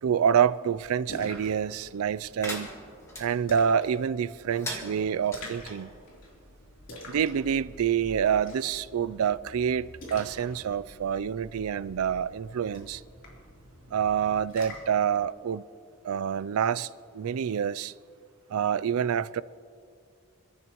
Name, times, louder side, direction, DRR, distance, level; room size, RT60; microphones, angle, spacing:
voice 1, 0.0-2.7 3.2-5.9 7.1-13.0 13.9-15.6 16.0-17.9 18.5-19.4, right 8 dB, 85° right, 0.4 m, -27 dB
Splash splatter, 0.7-15.0, left 1 dB, 60° left, 3.5 m, -47 dB
sound 1, 2.4-3.3 4.5-5.4, equal, 15° left, 1.8 m, -38 dB
27.5 x 14.0 x 3.0 m
head